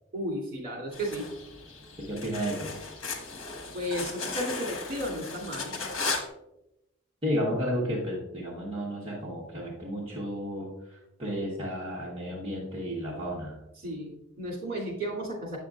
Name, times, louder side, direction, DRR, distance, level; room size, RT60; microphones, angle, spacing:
voice 1, 0.1-1.3 3.7-5.8 13.8-15.6, equal, 50° right, -3 dB, 2.5 m, -34 dB
sound 1, 0.9-6.3, left 4 dB, 75° left, 1.2 m, -36 dB
voice 2, 2.1-2.8 7.2-13.6, equal, 25° right, -6 dB, 1.3 m, -32 dB
8.0 x 6.9 x 2.4 m, 0.92 s
head